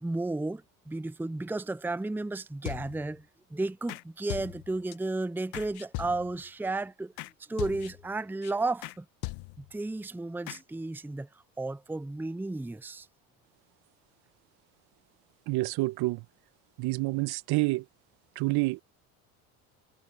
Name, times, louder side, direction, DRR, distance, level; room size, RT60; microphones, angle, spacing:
voice 1, 0.0-7.1 7.5-9.1 9.6-11.3 11.6-13.1, right 2 dB, 5° right, 0.8 m, -33 dB
sound 1, 2.7-3.2 3.9-4.0 4.3-5.0 5.5-6.5 7.2-7.3 7.6-8.1 8.4-8.5 8.8-9.0 9.2-9.8 10.5-10.6, left 23 dB, 65° left, 1.9 m, -39 dB
voice 2, 15.5-16.2 16.8-17.8 18.3-18.8, right 22 dB, 65° right, 1.6 m, -28 dB
hypercardioid pair, 70°, 42 cm